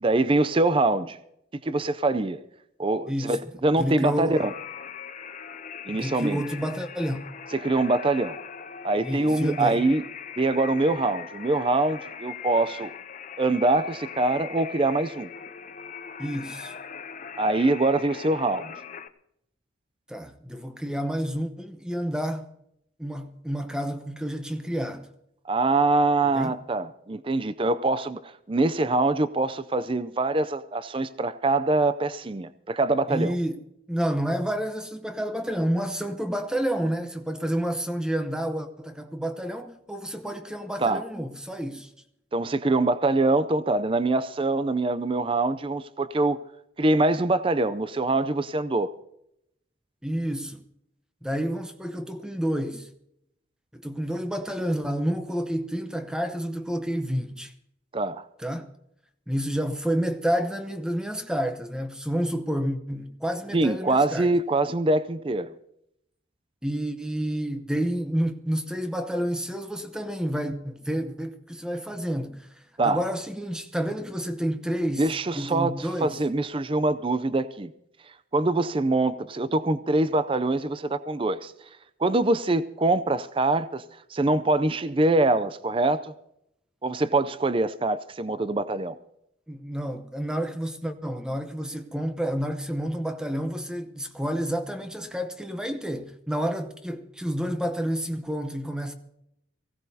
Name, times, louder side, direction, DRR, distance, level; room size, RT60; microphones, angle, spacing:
voice 1, 0.0-1.2 1.6-2.4 2.8-4.5 5.9-6.4 7.5-8.4 8.8-10.0 10.4-12.9 13.4-15.3 17.4-18.7 25.5-28.2 28.5-33.4 40.8-41.0 42.3-46.4 46.8-48.9 57.9-58.3 63.5-65.5 72.8-73.0 75.0-77.7 78.3-81.5 82.0-83.8 84.1-86.1 86.8-89.0, right 2 dB, 25° right, 0.4 m, -24 dB
voice 2, 3.1-3.4 3.8-4.5 6.0-7.2 9.0-9.8 16.2-16.7 20.1-22.5 23.0-25.1 26.3-26.6 33.1-33.6 33.9-41.9 50.0-50.6 51.2-52.9 53.7-57.5 58.4-58.7 59.3-64.3 66.6-76.2 89.5-98.9, equal, 5° right, 0.8 m, -29 dB
sound 1, 4.4-19.1, left 7 dB, 40° left, 0.6 m, -40 dB
23.5 x 16.5 x 2.8 m
head